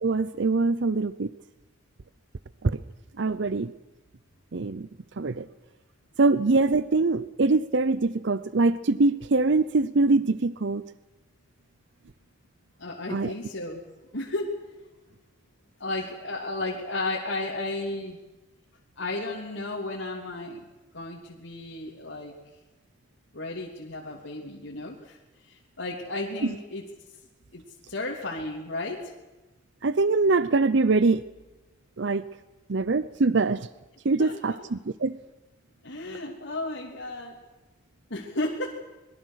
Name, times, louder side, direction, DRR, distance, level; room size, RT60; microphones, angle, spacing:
voice 1, 0.0-1.3 2.6-2.8 3.2-3.7 4.5-4.9 5.2-5.5 6.2-10.8 13.1-13.3 29.8-31.2 32.0-32.2 32.7-33.7 34.0-35.1, right 3 dB, 65° right, 15 dB, 0.7 m, -23 dB
voice 2, 12.8-13.8 14.1-14.7 15.8-18.2 19.0-20.6 20.9-22.4 23.3-26.9 27.5-27.6 27.9-29.1 34.2-34.6 35.8-37.4 38.1-38.8, left 2 dB, 80° left, -3 dB, 3.1 m, -33 dB
25.5 x 22.0 x 6.5 m, 1.1 s
head